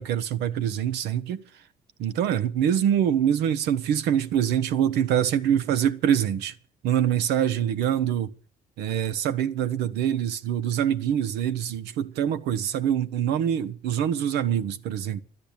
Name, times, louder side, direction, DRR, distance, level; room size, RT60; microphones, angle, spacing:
voice 1, 0.0-1.4 2.0-6.5 6.8-8.3 8.8-15.2, right 9 dB, 85° right, 1.0 m, -25 dB
12.5 x 10.0 x 8.7 m
cardioid pair, 110°, 17 cm